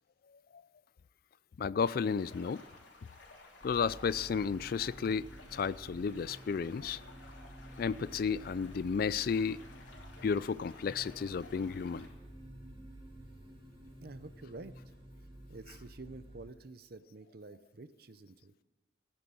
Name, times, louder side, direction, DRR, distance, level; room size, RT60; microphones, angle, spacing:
voice 1, 1.6-2.6 3.6-7.0 7.8-9.6 10.2-12.1, left 6 dB, 50° left, 0.3 m, -33 dB
sound 1, 1.8-12.1, left 3 dB, 85° left, 3.0 m, -56 dB
sound 2, 3.6-16.5, right 1 dB, 30° right, 2.7 m, -51 dB
voice 2, 14.0-14.7 15.5-18.5, right 3 dB, 55° right, 0.7 m, -49 dB
16.0 x 9.9 x 6.2 m
head